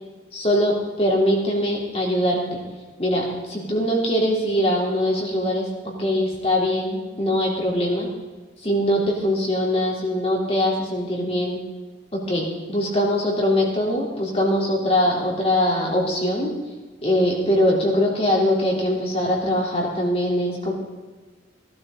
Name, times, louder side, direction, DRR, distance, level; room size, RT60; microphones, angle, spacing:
voice 1, 0.3-2.6 3.0-5.7 6.0-8.1 8.6-11.6 12.1-16.5 17.0-20.7, left 1 dB, 30° left, -2 dB, 3.4 m, -22 dB
18.0 x 13.0 x 3.9 m, 1.3 s
head